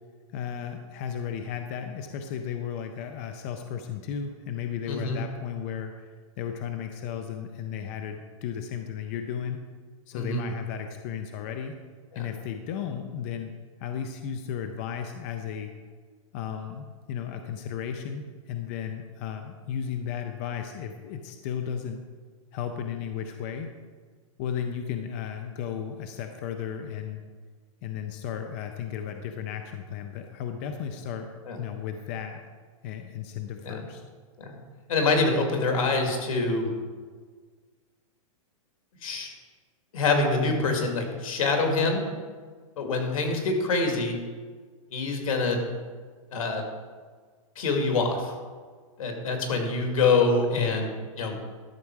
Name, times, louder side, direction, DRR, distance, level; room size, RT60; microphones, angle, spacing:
voice 1, 0.3-9.6 10.1-11.8 12.2-13.5 13.8-15.7 16.3-22.0 22.5-23.7 24.4-27.2 27.8-31.3 31.6-32.4 32.8-34.0 50.6-50.8, left 8 dB, 25° left, 6 dB, 0.4 m, -34 dB
voice 2, 4.9-5.2 10.1-10.5 12.1-12.3 31.5-31.6 33.6-33.8 34.4-34.6 34.9-36.7 39.0-39.3 39.9-42.1 42.8-44.2 44.9-45.6 46.3-46.6 47.6-48.3 49.0-50.9 51.2-51.4, left 3 dB, 75° left, 3 dB, 2.2 m, -25 dB
12.0 x 6.4 x 4.6 m, 1.5 s
supercardioid pair, 170°, 18 cm